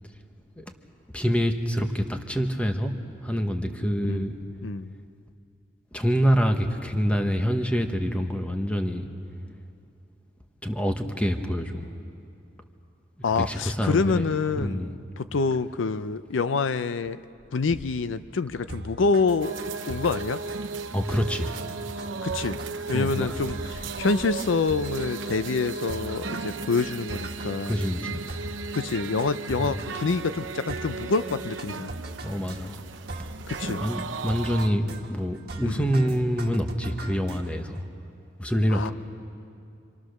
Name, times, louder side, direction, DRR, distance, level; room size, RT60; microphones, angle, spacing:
voice 1, 1.1-3.0 3.2-4.4 5.9-9.0 10.6-11.9 13.3-14.3 14.6-15.0 20.9-21.5 22.9-23.4 27.7-28.2 29.6-29.8 32.2-32.8 33.2-33.3 33.7-37.8 38.4-38.9, equal, 5° left, 5 dB, 1.2 m, -26 dB
voice 2, 4.6-4.9 13.2-17.2 17.5-19.5 19.9-20.4 22.2-22.6 22.9-27.8 28.7-31.9 33.5-33.8 35.6-35.8 38.7-38.9, left 4 dB, 85° left, 13 dB, 0.6 m, -27 dB
sound 1, 18.7-37.8, right 2 dB, 55° right, 1.7 m, -41 dB
sound 2, 19.4-34.7, right 4 dB, 85° right, 0.9 m, -36 dB
27.0 x 26.0 x 6.6 m, 2.6 s
head